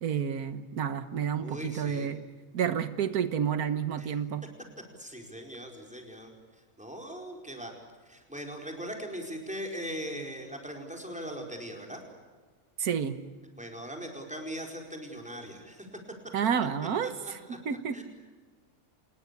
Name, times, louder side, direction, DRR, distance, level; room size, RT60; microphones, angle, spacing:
voice 1, 0.0-2.2 2.5-4.4 12.8-13.2 16.3-18.0, right 8 dB, 90° right, 12 dB, 1.6 m, -30 dB
voice 2, 1.4-2.1 4.0-4.1 5.0-6.3 6.8-7.7 8.1-12.0 13.6-15.9 17.0-17.3 17.7-18.0, equal, 5° right, 2 dB, 4.7 m, -40 dB
27.0 x 20.5 x 8.4 m, 1.5 s
omnidirectional pair, 1.6 m